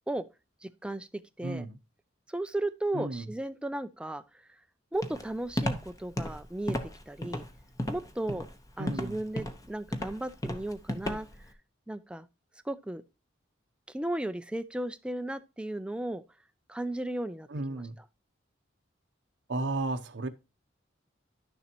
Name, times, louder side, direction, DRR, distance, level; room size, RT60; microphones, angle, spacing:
voice 1, 0.6-1.1 1.4-1.7 2.3-4.5 4.9-6.8 7.1-7.4 7.9-8.5 8.8-11.3 11.9-12.3 12.6-13.0 13.9-16.2 16.7-17.8, right 1 dB, 5° right, 0.4 m, -35 dB
voice 2, 1.4-1.8 2.9-3.3 8.8-9.2 17.5-18.0 19.5-20.3, right 2 dB, 65° right, 0.7 m, -33 dB
Walk footsteps, 5.0-11.5, left 1 dB, 20° left, 0.9 m, -34 dB
11.5 x 6.7 x 2.9 m
head